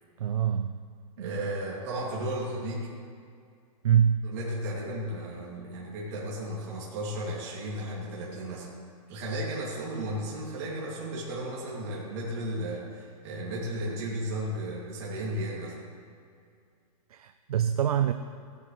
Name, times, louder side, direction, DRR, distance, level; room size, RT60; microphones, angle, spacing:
voice 1, 0.2-0.7 1.2-1.4 3.8-4.3 17.1-18.1, right 9 dB, 70° right, 8 dB, 0.6 m, -25 dB
voice 2, 1.2-2.9 4.2-8.7 9.1-15.7, right 1 dB, 25° right, -6 dB, 2.4 m, -34 dB
15.5 x 11.5 x 3.2 m, 2.2 s
hypercardioid pair, 180°, 20 cm